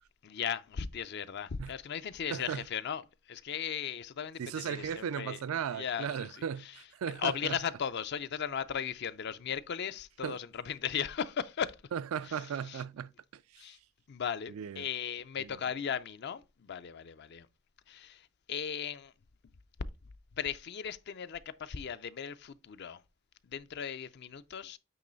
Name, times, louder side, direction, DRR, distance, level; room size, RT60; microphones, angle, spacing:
voice 1, 0.2-5.4 5.7-6.8 7.2-11.8 12.2-12.8 13.6-13.8 14.1-17.5 17.9-19.1 20.3-23.0 23.4-24.8, left 8 dB, 55° left, 0.4 m, -37 dB
voice 2, 2.3-2.6 4.4-7.6 10.2-10.4 11.9-13.6 14.5-14.9 15.4-15.6, right 7 dB, 85° right, 0.4 m, -37 dB
8.7 x 3.0 x 3.9 m
head